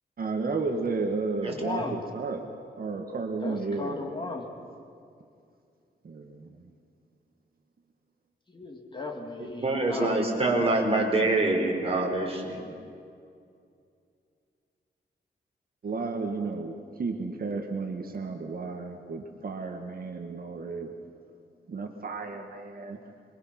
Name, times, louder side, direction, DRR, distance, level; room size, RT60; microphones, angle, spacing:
voice 1, 0.2-2.5 2.8-4.1 6.0-6.7 15.8-20.9 21.7-23.0, right 4 dB, 55° right, 3 dB, 1.8 m, -33 dB
voice 2, 1.5-2.0 3.4-4.4 8.5-10.1, left 2 dB, 25° left, 2 dB, 2.7 m, -36 dB
voice 3, 9.4-12.6, right 2 dB, 35° right, 0 dB, 4.4 m, -25 dB
26.5 x 23.0 x 6.1 m, 2.4 s
wide cardioid pair, 120°, 18 cm